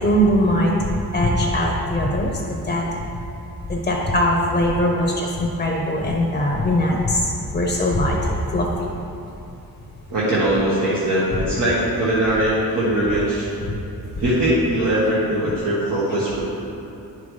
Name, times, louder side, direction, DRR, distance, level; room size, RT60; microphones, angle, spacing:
voice 1, 0.0-2.8 3.7-8.7, equal, 25° left, -1 dB, 0.8 m, -21 dB
voice 2, 10.1-13.5 14.2-16.4, right 1 dB, 65° right, -9 dB, 1.6 m, -21 dB
10.0 x 5.6 x 3.3 m, 2.8 s
cardioid pair, 135°, 36 cm